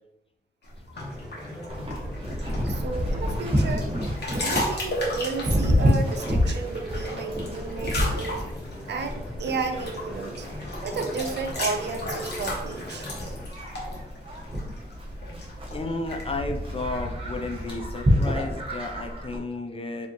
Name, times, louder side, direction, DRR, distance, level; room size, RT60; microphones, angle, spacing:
sound 1, 0.6-18.8, left 1 dB, 75° left, 1.3 m, -36 dB
sound 2, 0.9-13.5, left 1 dB, 5° right, 0.9 m, -41 dB
Livestock farm animals working animals, 1.7-19.4, equal, 30° right, 0.9 m, -29 dB
voice 1, 2.6-3.9 4.3-8.5 8.9-10.5 10.8-13.1, right 4 dB, 75° right, 6 dB, 0.5 m, -33 dB
voice 2, 15.7-20.1, left 2 dB, 30° left, 5 dB, 0.4 m, -32 dB
5.0 x 2.8 x 2.9 m, 0.90 s
wide cardioid pair, 135°, 18 cm